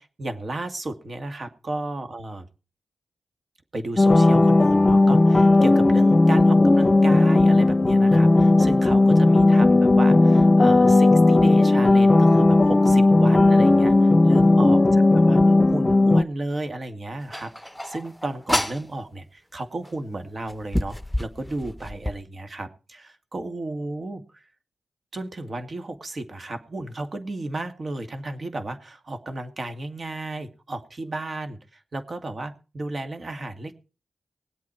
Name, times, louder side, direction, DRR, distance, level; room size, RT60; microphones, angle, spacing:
voice 1, 0.0-2.5 3.7-24.2 25.1-33.7, right 2 dB, 50° right, 7 dB, 2.2 m, -33 dB
sound 1, 4.0-16.2, left 2 dB, 35° left, 0.7 m, -16 dB
sound 2, 17.3-18.9 19.8-19.9 20.5-22.2, left 1 dB, 5° left, 0.9 m, -29 dB
19.0 x 8.5 x 4.5 m, 0.35 s
cardioid pair, 45°, 0 cm